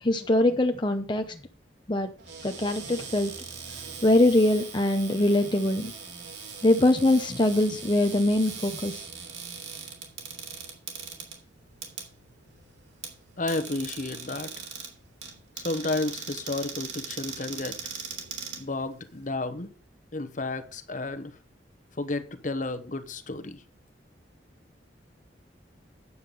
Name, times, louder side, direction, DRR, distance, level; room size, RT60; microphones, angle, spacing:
voice 1, 0.0-1.2 1.9-2.1 2.4-3.3 4.0-5.9 6.6-9.0, left 1 dB, 25° left, 0.8 m, -23 dB
Cupboard open or close, 2.2-19.2, right 6 dB, 75° right, 3.2 m, -40 dB
voice 2, 13.4-14.5 15.6-17.7 18.6-19.7 20.1-21.3 22.0-23.6, left 2 dB, 45° left, 1.1 m, -31 dB
9.6 x 7.9 x 5.3 m
head